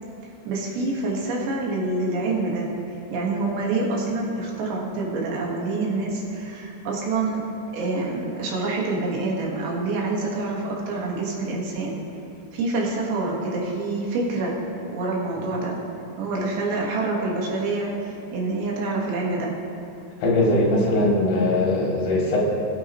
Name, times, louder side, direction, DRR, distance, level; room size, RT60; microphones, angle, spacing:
voice 1, 0.5-2.7 3.1-7.4 7.7-12.0 12.5-14.6 14.9-15.8 16.2-19.6, right 3 dB, 70° right, -2 dB, 3.5 m, -26 dB
voice 2, 20.2-22.4, left 2 dB, 75° left, -4 dB, 4.5 m, -20 dB
20.5 x 8.4 x 3.0 m, 2.8 s
omnidirectional pair, 5.3 m